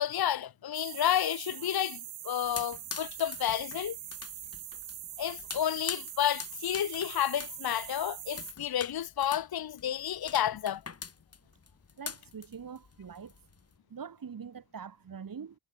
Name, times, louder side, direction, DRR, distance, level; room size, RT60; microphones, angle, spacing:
voice 1, 0.0-2.0 2.2-4.0 5.2-10.8, left 10 dB, 50° left, 1.0 m, -31 dB
sound 1, 0.7-8.5, right 11 dB, 75° right, 1.3 m, -43 dB
sound 2, 2.4-13.8, left 5 dB, 30° left, 2.1 m, -45 dB
voice 2, 12.0-13.3 13.9-15.6, right 6 dB, 45° right, 2.7 m, -43 dB
wide cardioid pair, 160°, 48 cm